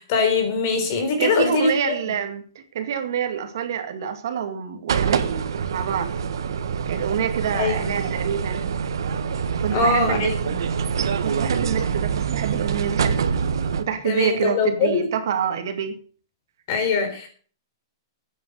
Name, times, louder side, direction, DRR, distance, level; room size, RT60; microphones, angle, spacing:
voice 1, 0.0-2.0 7.5-7.9 9.7-10.5 14.0-15.1 16.7-17.3, left 4 dB, 35° left, 6 dB, 3.9 m, -22 dB
voice 2, 1.2-5.4 5.7-6.1 6.9-8.7 9.6-10.3 11.2-13.2 13.8-16.0, right 8 dB, 55° right, 6 dB, 2.2 m, -26 dB
sound 1, 4.9-13.8, right 6 dB, 80° right, 1.5 m, -25 dB
12.0 x 9.5 x 6.6 m, 0.42 s
hypercardioid pair, 175°, 2 cm